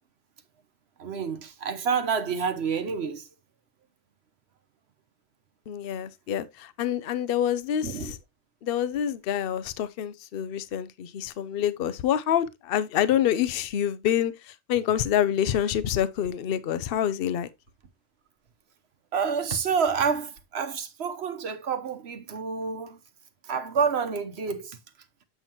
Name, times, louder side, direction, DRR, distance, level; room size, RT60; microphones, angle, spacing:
voice 1, 1.0-3.3 7.8-8.1 19.1-23.0 23.4-24.8, right 6 dB, 85° right, 1.2 m, -28 dB
voice 2, 5.7-8.2 8.6-17.5, left 10 dB, 70° left, 0.8 m, -27 dB
8.0 x 5.7 x 2.9 m
omnidirectional pair, 1.1 m